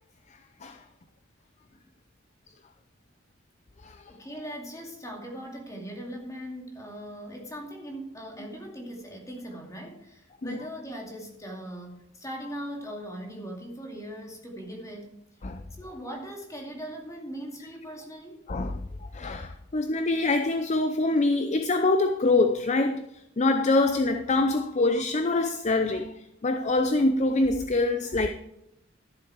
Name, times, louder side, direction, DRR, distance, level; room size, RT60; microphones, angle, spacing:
voice 1, 4.1-15.2 15.8-18.4, equal, 15° left, 2.4 m, -40 dB
voice 2, 18.5-18.9 19.1-23.0 23.4-26.1 26.4-28.3, left 2 dB, 35° left, 0.6 m, -24 dB
13.0 x 7.4 x 4.7 m
head